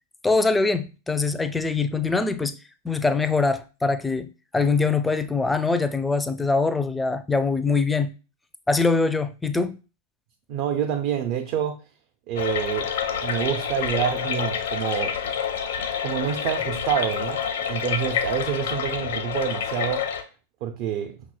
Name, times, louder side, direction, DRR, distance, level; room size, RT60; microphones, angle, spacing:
voice 1, 0.2-2.6 2.8-4.3 4.5-8.1 8.7-9.8, left 3 dB, 10° left, 0.4 m, -23 dB
voice 2, 10.5-11.8 12.3-12.9 13.2-15.2 16.0-20.1 20.6-21.1, right 9 dB, 50° right, 0.5 m, -27 dB
sound 1, 12.4-20.2, left 7 dB, 65° left, 0.6 m, -28 dB
5.7 x 3.0 x 2.2 m
figure-of-eight pair, 90°, 0 cm